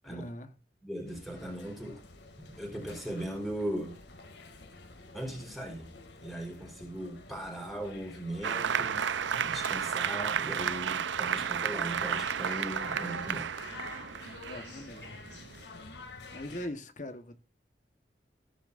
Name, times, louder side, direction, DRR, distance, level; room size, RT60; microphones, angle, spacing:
voice 1, 0.0-0.5 14.5-15.2 16.3-17.4, left 1 dB, 45° left, 1.2 m, -41 dB
voice 2, 0.8-2.0 2.6-4.0 5.1-5.9 6.2-9.0 9.4-13.5, right 1 dB, ahead, 4.1 m, -38 dB
sound 1, 1.1-16.7, left 3 dB, 75° left, 2.3 m, -49 dB
Applause, 8.4-15.6, right 7 dB, 85° right, 0.6 m, -32 dB
15.0 x 9.9 x 2.5 m
head